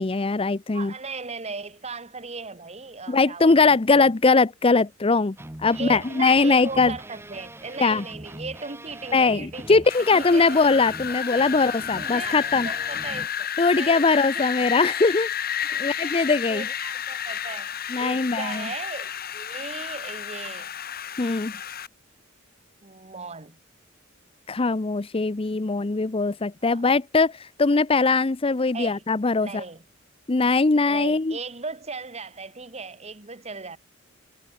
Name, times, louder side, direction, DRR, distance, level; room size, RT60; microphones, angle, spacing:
voice 1, 0.0-0.9 3.1-5.4 5.6-7.0 7.8-8.0 9.1-12.7 13.6-15.3 15.8-16.7 17.9-18.7 21.2-21.5 24.5-29.6 30.3-31.4, left 3 dB, 30° left, 0.6 m, -21 dB
voice 2, 0.7-4.1 5.7-9.8 10.1-10.6 11.3-11.5 11.9-14.0 14.3-14.4 15.7-16.1 16.5-20.7 22.8-23.6 26.6-26.8 28.7-29.0 29.4-29.8 30.8-33.8, right 4 dB, 30° right, 1.9 m, -37 dB
sound 1, 5.4-13.3, right 1 dB, 10° right, 1.1 m, -42 dB
Wind, 9.9-21.9, left 9 dB, 50° left, 3.4 m, -31 dB
head